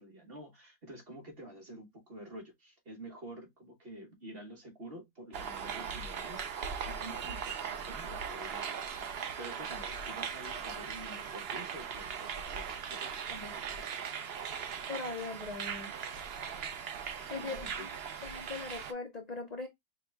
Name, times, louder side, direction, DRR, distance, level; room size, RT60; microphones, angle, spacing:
voice 1, 0.0-14.1 17.2-18.2, right 1 dB, 40° right, 1.3 m, -49 dB
sound 1, 5.3-18.9, right 7 dB, 70° right, 0.6 m, -39 dB
voice 2, 14.9-15.9 17.3-17.9 18.2-19.7, left 3 dB, 55° left, 0.4 m, -40 dB
4.7 x 2.3 x 3.3 m
omnidirectional pair, 1.7 m